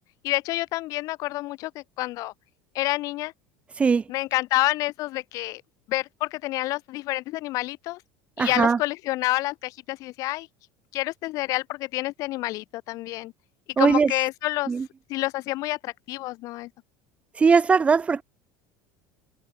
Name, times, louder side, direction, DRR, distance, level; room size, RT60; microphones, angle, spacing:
voice 1, 0.2-2.3 2.7-3.3 4.1-5.6 5.9-8.0 8.4-10.5 10.9-13.3 13.8-14.7 15.1-16.7, left 18 dB, 50° left, 6.7 m, -28 dB
voice 2, 8.4-8.8 13.8-14.1 14.7-14.9 17.4-18.2, right 5 dB, 15° right, 2.2 m, -19 dB
cardioid pair, 165°, 8 cm